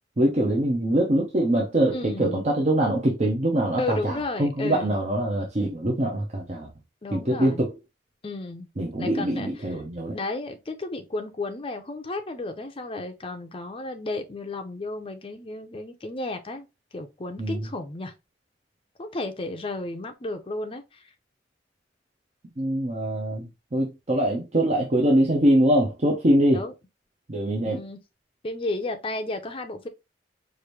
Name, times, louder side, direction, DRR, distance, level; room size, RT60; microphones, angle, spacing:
voice 1, 0.2-6.7 7.1-7.8 8.8-10.2 17.4-17.7 22.6-26.7 27.3-27.8, right 1 dB, 40° right, 0.8 m, -23 dB
voice 2, 1.9-2.4 3.8-5.0 7.0-7.7 8.2-8.7 9.0-9.5 10.1-16.7 16.9-18.1 19.0-21.0 26.5-26.7 27.6-28.0 28.4-29.9, left 2 dB, 30° left, 0.6 m, -33 dB
4.9 x 2.6 x 3.1 m
head